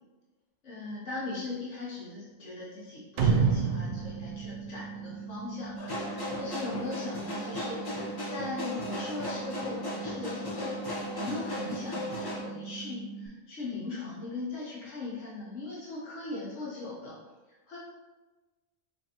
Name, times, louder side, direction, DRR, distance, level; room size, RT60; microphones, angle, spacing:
voice 1, 0.6-17.2 17.5-17.8, left 3 dB, 70° left, -6 dB, 1.2 m, -39 dB
sound 1, 3.2-5.7, right 5 dB, 70° right, 0.8 m, -27 dB
sound 2, 3.3-13.3, right 6 dB, 40° right, 0.8 m, -42 dB
sound 3, 5.8-12.4, left 1 dB, 35° left, 0.3 m, -36 dB
4.5 x 2.7 x 2.8 m, 1.2 s
omnidirectional pair, 1.3 m